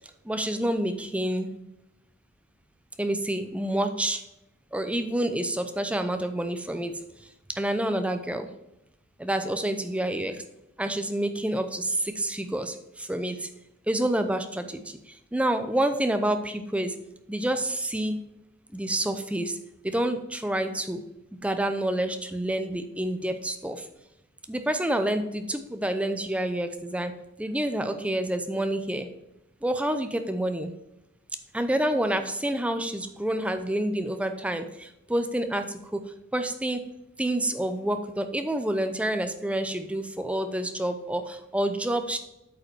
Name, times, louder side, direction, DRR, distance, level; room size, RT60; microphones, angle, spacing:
voice 1, 0.2-1.5 3.0-4.2 4.7-7.0 7.5-8.5 9.2-10.4 10.8-13.5 13.9-17.0 17.3-18.2 18.7-19.6 19.8-21.0 21.4-23.9 24.5-27.1 27.4-29.1 29.6-30.7 31.5-36.1 36.3-36.8 37.2-42.2, right 1 dB, 5° right, 8 dB, 0.6 m, -28 dB
8.4 x 5.4 x 4.5 m, 0.90 s
head